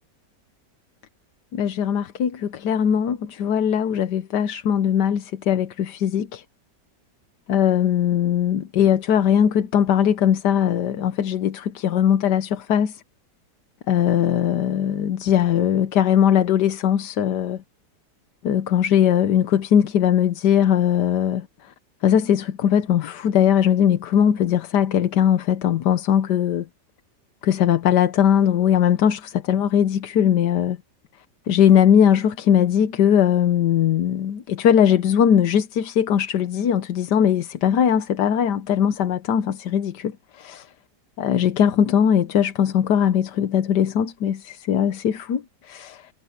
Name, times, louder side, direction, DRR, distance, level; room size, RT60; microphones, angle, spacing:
voice 1, 1.5-6.4 7.5-13.0 13.9-17.6 18.4-21.7 22.0-26.7 27.4-30.8 31.5-40.7 41.2-46.1, left 9 dB, 70° left, 1.5 m, -20 dB
omnidirectional pair, 1.9 m